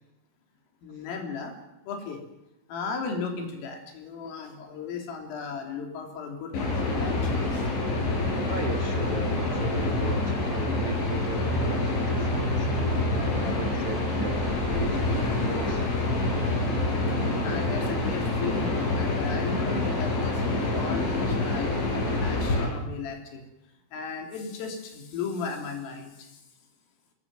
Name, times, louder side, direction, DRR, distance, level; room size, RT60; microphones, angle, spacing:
voice 1, 0.8-1.5 1.9-2.2 2.7-7.6 17.4-23.4 23.9-26.1, left 5 dB, 80° left, 3 dB, 6.1 m, -36 dB
sound 1, 6.5-22.7, left 2 dB, 65° left, 8.7 m, -27 dB
voice 2, 8.4-15.8, right 3 dB, 45° right, 4 dB, 2.2 m, -38 dB
24.5 x 21.0 x 7.9 m, 0.91 s
omnidirectional pair, 5.8 m